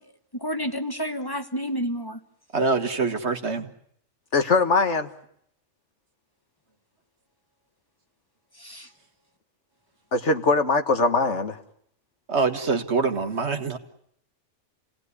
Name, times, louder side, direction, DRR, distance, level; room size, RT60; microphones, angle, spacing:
voice 1, 0.3-2.2 8.6-8.9, equal, 20° left, 1.3 m, -30 dB
voice 2, 2.5-3.7 12.3-13.8, right 4 dB, 55° right, 1.8 m, -25 dB
voice 3, 4.3-5.1 10.1-11.6, left 3 dB, 60° left, 1.8 m, -21 dB
29.5 x 18.5 x 9.7 m
omnidirectional pair, 1.4 m